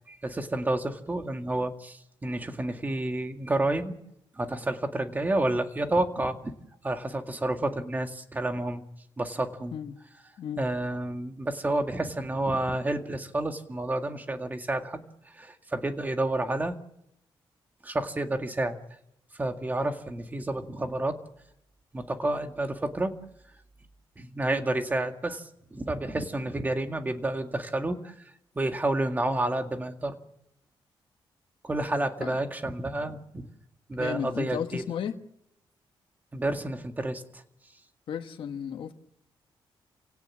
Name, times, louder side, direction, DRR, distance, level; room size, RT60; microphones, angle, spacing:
voice 1, 0.1-4.0 4.4-6.4 6.8-8.8 9.2-9.8 10.6-15.1 15.3-16.8 17.8-18.8 19.3-21.2 21.9-23.2 24.2-25.4 25.7-28.1 28.6-30.2 31.6-33.5 33.9-34.8 36.3-37.4, right 2 dB, 20° right, 6 dB, 2.0 m, -30 dB
voice 2, 34.0-35.2 38.1-38.9, left 8 dB, 70° left, 5 dB, 1.5 m, -34 dB
28.5 x 17.5 x 7.4 m, 0.81 s
cardioid pair, 130°, 9 cm